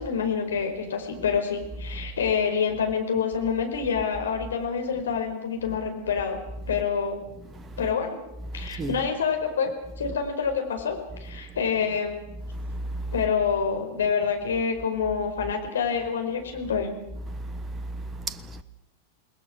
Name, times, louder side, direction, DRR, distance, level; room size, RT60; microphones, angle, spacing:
voice 1, 0.0-6.4 6.7-7.2 7.8-8.2 8.5-9.7 10.0-12.2 13.1-16.9, left 6 dB, 65° left, 5.0 m, -27 dB
voice 2, 7.4-7.9 8.5-9.0 11.3-11.6 12.5-13.1 17.3-18.6, right 2 dB, 20° right, 1.2 m, -35 dB
28.5 x 20.5 x 6.3 m
figure-of-eight pair, 90°, 0 cm